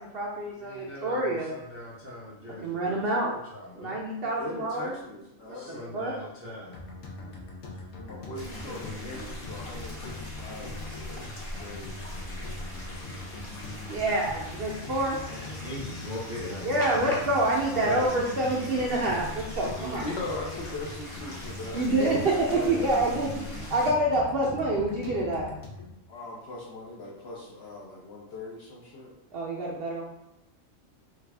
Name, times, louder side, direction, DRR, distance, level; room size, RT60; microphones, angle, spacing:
voice 1, 0.0-1.5 2.6-3.3 3.8-4.9 5.5-5.6 5.9-6.1 13.9-15.2 16.6-20.1 21.7-22.2 22.7-25.5 29.3-30.0, right 1 dB, 60° right, -3 dB, 0.7 m, -27 dB
voice 2, 0.6-2.8 3.2-4.0 5.6-6.8 8.2-8.3 8.7-8.9 15.3-17.2 17.8-18.1 22.8-23.1, left 1 dB, 20° right, -6 dB, 0.3 m, -40 dB
voice 3, 3.0-3.4 4.2-6.1 7.9-12.0 19.8-22.7 26.1-29.1, left 2 dB, 60° left, -2 dB, 0.7 m, -40 dB
sound 1, 6.7-25.9, left 3 dB, 85° left, 1.1 m, -41 dB
sound 2, 8.3-23.9, left 1 dB, 30° left, 0.8 m, -42 dB
3.3 x 2.4 x 3.3 m, 0.84 s
omnidirectional pair, 1.4 m